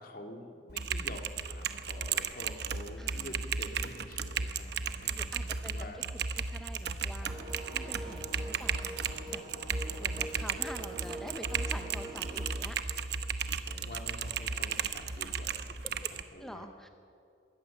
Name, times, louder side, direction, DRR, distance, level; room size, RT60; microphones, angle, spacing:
voice 1, 0.0-6.1 7.9-8.5 13.6-16.7, left 1 dB, 50° left, 4 dB, 2.2 m, -48 dB
Typing, 0.7-16.2, right 6 dB, 55° right, 0.9 m, -35 dB
sound 1, 2.5-8.6, equal, 85° right, 4.3 m, -57 dB
voice 2, 3.0-3.4 5.2-7.4 7.7-9.0 9.3-9.4 10.0-12.8 16.4-16.9, equal, ahead, 6 dB, 0.6 m, -47 dB
sound 2, 7.2-12.5, right 1 dB, 20° right, 3.1 m, -44 dB
21.5 x 17.0 x 7.1 m, 2.6 s
head